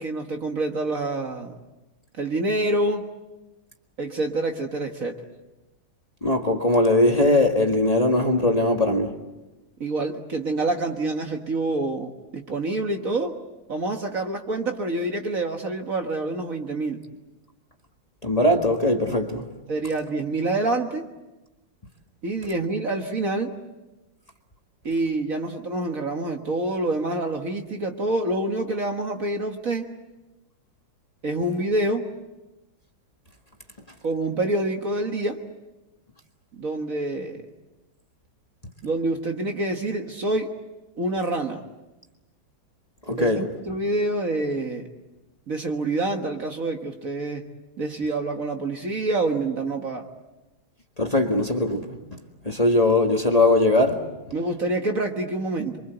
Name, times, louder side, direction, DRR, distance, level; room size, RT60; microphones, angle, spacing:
voice 1, 0.0-1.5 2.2-3.1 4.0-5.2 9.8-13.4 13.7-17.0 19.7-21.1 22.2-23.6 24.8-29.9 31.2-32.1 34.0-35.5 36.5-37.5 38.8-40.5 41.0-41.6 43.2-44.9 45.5-47.5 47.8-50.1 54.3-55.8, right 2 dB, 45° right, 1.9 m, -27 dB
voice 2, 6.2-9.1 18.2-19.4 43.1-43.5 51.0-51.9 52.5-54.0, left 2 dB, 20° left, 1.7 m, -20 dB
28.0 x 24.0 x 8.0 m
omnidirectional pair, 2.2 m